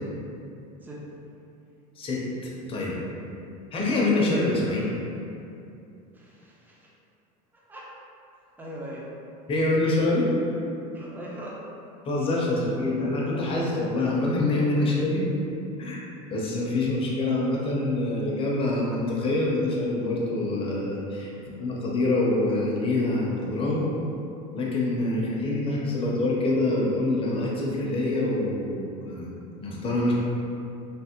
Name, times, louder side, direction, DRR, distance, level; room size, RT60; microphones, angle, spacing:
voice 1, 2.0-3.0 3.7-4.9 9.5-10.3 10.9-11.0 12.1-15.3 15.8-16.0 16.3-23.8 24.5-29.3 29.6-30.1, left 2 dB, 30° left, -4 dB, 0.6 m, -25 dB
voice 2, 6.1-6.9 7.5-7.9 8.6-9.1 10.9-11.7 12.6-12.7 14.9-15.0 21.3-21.4, right 1 dB, 10° right, -5 dB, 0.5 m, -41 dB
3.3 x 2.0 x 2.9 m, 2.7 s
supercardioid pair, 120°, 19 cm